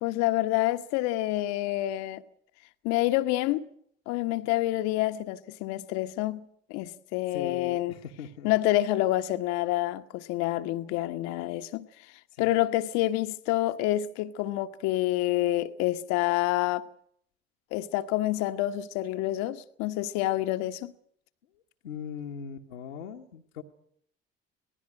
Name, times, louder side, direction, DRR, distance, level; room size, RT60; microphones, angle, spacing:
voice 1, 0.0-2.2 2.8-3.7 4.1-7.9 8.4-11.9 12.4-16.8 17.7-20.9, left 15 dB, 60° left, 1.1 m, -28 dB
voice 2, 7.3-8.5 12.3-12.5 21.8-23.6, left 7 dB, 80° left, 1.3 m, -40 dB
26.5 x 19.0 x 6.3 m
figure-of-eight pair, 55°, 31 cm